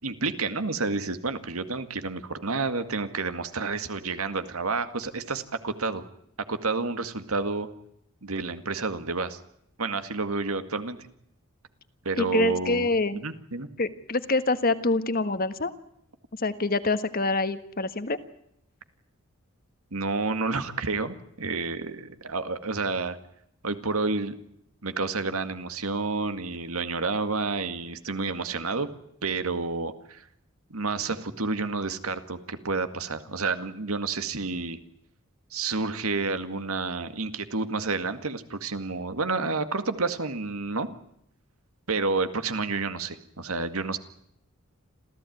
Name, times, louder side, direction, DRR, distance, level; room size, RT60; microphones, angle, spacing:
voice 1, 0.0-6.0 6.5-7.7 8.2-9.4 9.8-11.0 12.1-12.9 13.1-13.7 19.9-23.2 23.6-24.4 24.8-28.9 29.2-30.3 30.7-34.8 35.5-40.9 41.9-44.0, right 3 dB, 80° right, 10 dB, 2.0 m, -30 dB
voice 2, 12.2-13.2 13.8-15.7 16.4-18.2, left 3 dB, 45° left, 11 dB, 1.4 m, -26 dB
27.0 x 15.5 x 9.4 m, 0.74 s
head